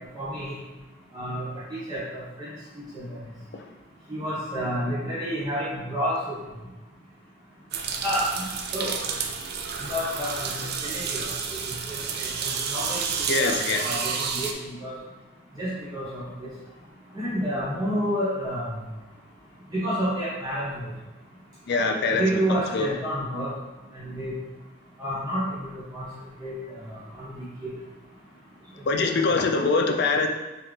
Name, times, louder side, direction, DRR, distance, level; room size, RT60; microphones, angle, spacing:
voice 1, 0.1-0.6 1.1-2.5 2.9-3.1 4.1-6.4 8.0-8.4 8.7-8.9 9.8-11.3 11.9-13.0 13.4-14.9 15.6-16.5 17.1-18.7 19.7-20.8 22.2-23.5 23.9-24.3 25.0-26.1 26.4-27.7 28.9-29.0, equal, 20° right, -9 dB, 1.2 m, -30 dB
sound 1, 7.7-14.5, right 6 dB, 55° right, 0.4 m, -30 dB
voice 2, 13.3-13.8 21.7-22.4 22.7-22.9 28.9-30.3, left 3 dB, 60° left, 4 dB, 0.5 m, -23 dB
4.4 x 3.6 x 3.2 m, 1.1 s
head